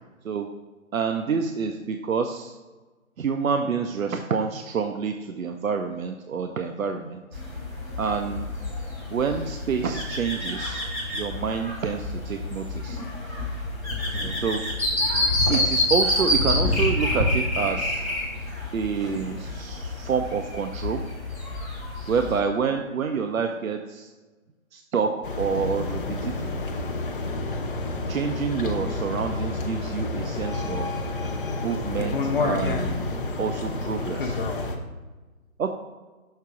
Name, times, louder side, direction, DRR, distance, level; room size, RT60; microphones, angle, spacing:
voice 1, 0.9-2.6 3.2-7.4 8.0-8.5 9.1-10.9 11.1-13.0 14.1-14.6 15.5-18.1 18.7-21.0 22.1-24.1 24.7-26.6 28.1-30.9 31.6-33.1 33.4-34.4 35.6-35.7, right 6 dB, 75° right, 5 dB, 0.6 m, -28 dB
sound 1, 7.3-22.4, left 1 dB, 10° right, 0.5 m, -28 dB
sound 2, 25.2-34.8, left 2 dB, 40° left, 0.7 m, -29 dB
6.6 x 3.6 x 5.8 m, 1.2 s
figure-of-eight pair, 155°, 41 cm